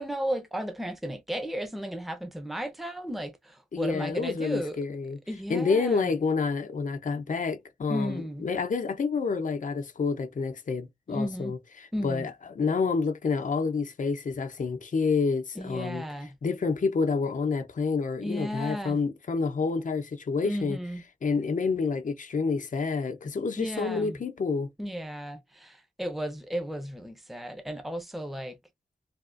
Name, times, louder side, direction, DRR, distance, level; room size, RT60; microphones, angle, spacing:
voice 1, 0.0-4.8 5.3-6.1 7.9-8.5 11.1-11.5 11.9-12.3 15.6-16.3 18.2-19.0 20.4-21.0 23.6-24.2 24.8-28.6, equal, ahead, 0.7 m, -34 dB
voice 2, 3.7-5.2 5.5-16.0 16.4-20.8 21.2-24.7, left 4 dB, 65° left, 0.7 m, -28 dB
3.4 x 2.4 x 2.4 m
wide cardioid pair, 60°, 14 cm